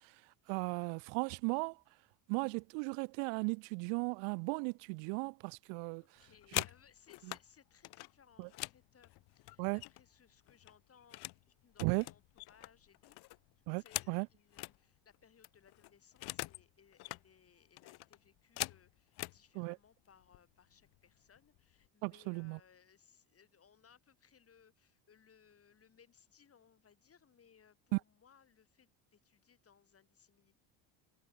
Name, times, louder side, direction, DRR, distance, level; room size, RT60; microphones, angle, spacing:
voice 1, 0.5-1.8 2.3-6.0 8.4-8.5 9.6-9.8 11.8-12.0 13.7-13.8 14.1-14.3 19.6-19.7 22.0-22.6, right 40 dB or more, 85° right, 0.5 m, -36 dB
voice 2, 6.0-13.2 13.6-30.6, left 7 dB, 35° left, 6.9 m, -66 dB
sound 1, 6.2-7.4 7.8-10.2 10.5-11.4 11.7-14.8 15.1-15.2 15.4-16.6 16.9-17.2 17.8-19.4 20.2-20.4 20.7-21.1 21.4-21.9, left 21 dB, 65° left, 0.9 m, -43 dB
cardioid pair, 115°, 41 cm